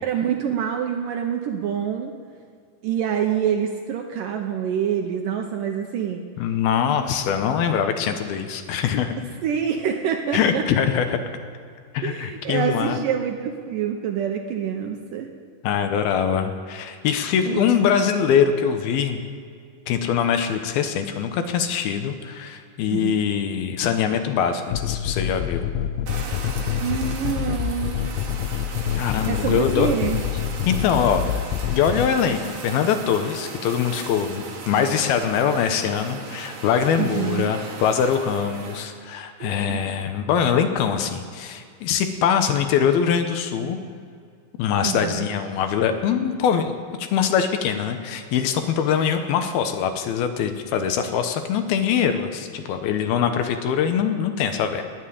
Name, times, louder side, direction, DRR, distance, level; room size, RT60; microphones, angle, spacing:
voice 1, 0.0-2.1 2.8-6.2 9.4-10.6 12.0-15.3 17.5-17.9 22.9-23.2 26.8-28.0 29.3-30.2 37.0-37.5 39.4-39.8 44.8-45.3, right 8 dB, 75° right, 3 dB, 2.1 m, -26 dB
voice 2, 6.4-9.2 10.3-11.2 11.9-13.0 15.6-19.2 19.9-25.7 29.0-29.9 30.7-43.8 44.6-54.8, left 7 dB, 75° left, 7 dB, 2.7 m, -23 dB
sound 1, 24.7-32.1, left 9 dB, 90° left, 2.7 m, -27 dB
Fire, 26.1-38.9, right 4 dB, 50° right, 2.4 m, -37 dB
20.5 x 7.7 x 8.6 m, 2.2 s
omnidirectional pair, 4.7 m